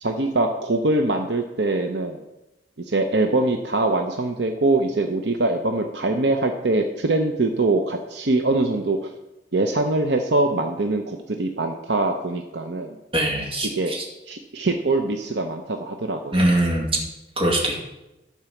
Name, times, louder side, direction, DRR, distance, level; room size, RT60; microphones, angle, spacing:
voice 1, 0.0-2.2 2.9-9.1 9.5-13.0 13.7-13.9 14.3-16.4, right 2 dB, 70° right, 5 dB, 0.8 m, -23 dB
voice 2, 13.1-14.0 16.3-16.9 17.4-17.8, right 1 dB, 30° right, -1 dB, 2.3 m, -22 dB
12.0 x 4.8 x 7.1 m, 0.98 s
head